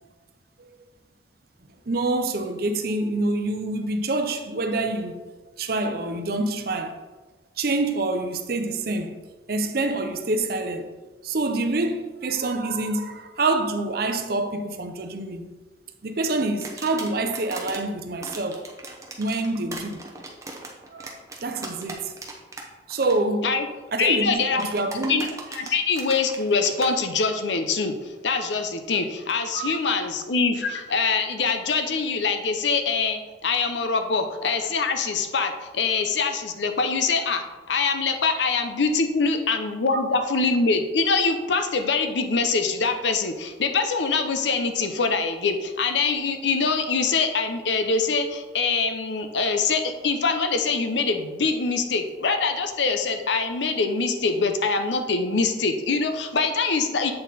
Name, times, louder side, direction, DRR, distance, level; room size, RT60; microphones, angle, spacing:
voice 1, 1.9-5.2 5.6-7.0 7.6-9.2 9.5-10.9 11.2-15.5 16.0-18.7 19.2-20.0 20.9-21.1 21.4-22.1 22.9-23.6 23.9-25.2 29.5-29.8, right 2 dB, 55° right, 0.6 m, -26 dB
sound 1, 16.6-17.8 18.2-22.6 22.9-23.1 24.5-26.9, right 3 dB, 15° right, 0.8 m, -38 dB
voice 2, 24.0-24.6 25.1-57.1, left 4 dB, 75° left, 0.7 m, -24 dB
7.7 x 4.2 x 4.1 m
head